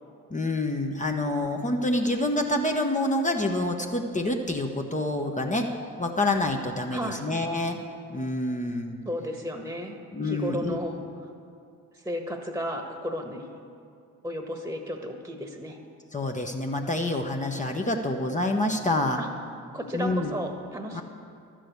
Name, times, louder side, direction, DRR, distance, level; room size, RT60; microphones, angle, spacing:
voice 1, 0.3-5.7 6.0-7.8 8.1-9.0 10.1-10.8 16.1-19.2 19.9-20.3 20.9-21.0, left 1 dB, 20° left, 2 dB, 1.0 m, -27 dB
voice 2, 6.9-7.2 9.0-9.9 10.2-11.1 12.0-13.5 14.2-15.8 19.2-19.3 19.7-21.0, equal, 5° right, 4 dB, 1.4 m, -33 dB
11.5 x 6.2 x 8.2 m, 2.4 s
hypercardioid pair, 55°, 37 cm